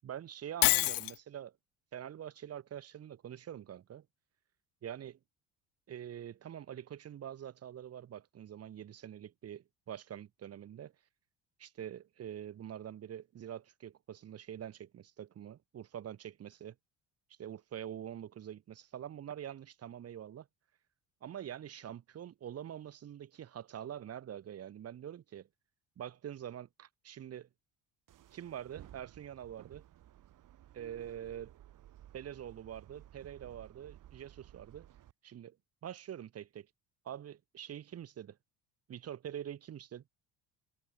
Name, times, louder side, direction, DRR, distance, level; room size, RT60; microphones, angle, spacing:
voice 1, 0.0-1.5 1.9-4.0 4.8-5.2 5.9-10.9 11.6-16.7 17.4-20.5 21.2-25.5 26.0-27.5 28.3-29.8 30.7-31.5 32.1-34.9 35.2-35.6 35.8-36.7 37.0-38.4 38.9-40.1, right 10 dB, 40° right, 1.2 m, -45 dB
Shatter, 0.6-1.2, left 21 dB, 65° left, 0.5 m, -26 dB
sound 1, 28.1-35.1, right 12 dB, 60° right, 3.0 m, -56 dB
cardioid pair, 105°, 36 cm